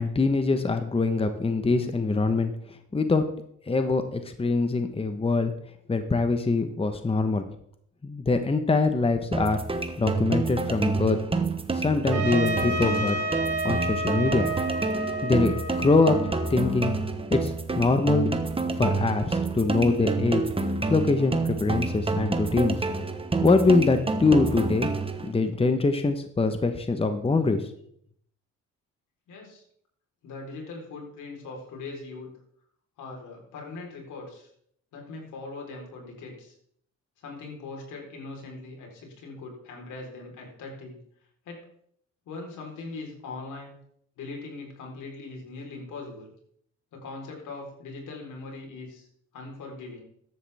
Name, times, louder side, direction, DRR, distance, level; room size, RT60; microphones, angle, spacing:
voice 1, 0.0-2.5 2.9-3.2 3.7-5.5 5.9-7.5 8.0-9.6 10.0-11.2 11.7-13.2 13.4-14.5 15.2-15.5 15.8-16.2 16.5-17.0 17.3-18.3 18.8-20.4 20.9-22.8 23.4-24.9 25.2-27.6, left 3 dB, 20° left, 8 dB, 1.1 m, -23 dB
sound 1, 9.3-25.3, right 3 dB, 20° right, 1.2 m, -28 dB
Trumpet, 12.1-16.9, right 1 dB, 80° right, 4.0 m, -31 dB
voice 2, 29.3-29.6 30.2-32.3 33.0-34.5 34.9-36.6 37.2-41.0 41.4-41.7 42.3-43.8 44.2-46.3 46.9-49.1 49.3-50.0, left 3 dB, 80° left, 1 dB, 4.1 m, -40 dB
14.0 x 10.5 x 3.6 m, 0.68 s
cardioid pair, 90°, 30 cm